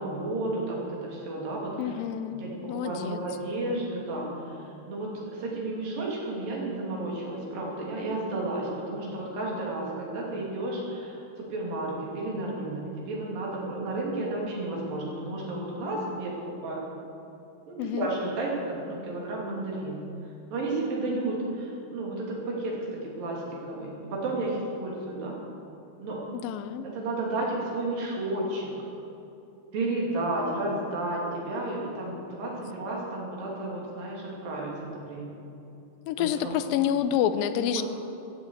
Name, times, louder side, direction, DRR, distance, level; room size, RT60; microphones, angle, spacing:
voice 1, 0.0-2.0 2.3-16.3 16.6-16.9 17.7-20.0 20.5-25.4 26.0-26.2 27.0-28.7 29.7-35.4 36.2-36.6 37.7-37.8, right 2 dB, 80° right, -3 dB, 4.3 m, -32 dB
voice 2, 1.8-3.2 17.8-18.1 26.3-26.9 36.1-37.8, left 10 dB, 90° left, 11 dB, 2.4 m, -28 dB
14.0 x 8.2 x 7.8 m, 2.8 s
omnidirectional pair, 3.9 m